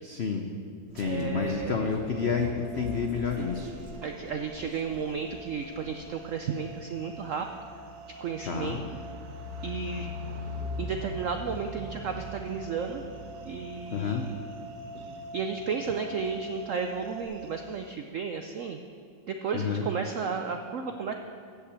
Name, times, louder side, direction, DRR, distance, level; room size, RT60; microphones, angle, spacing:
voice 1, 0.0-0.5 0.9-3.7 8.5-8.8 13.9-14.2 19.5-19.9, left 6 dB, 75° left, 4 dB, 0.6 m, -29 dB
sound 1, 0.9-6.5, right 2 dB, 40° right, 1.0 m, -45 dB
voice 2, 1.0-1.9 4.0-7.5 8.2-8.8 9.6-10.1 10.8-13.0 13.4-14.3 15.3-18.8 19.3-21.1, right 6 dB, 75° right, 5 dB, 0.7 m, -33 dB
sound 2, 1.6-17.2, equal, 15° left, 2.2 m, -47 dB
sound 3, 3.3-17.9, left 1 dB, 60° right, 1.2 m, -43 dB
14.0 x 5.8 x 8.2 m, 2.5 s
omnidirectional pair, 2.0 m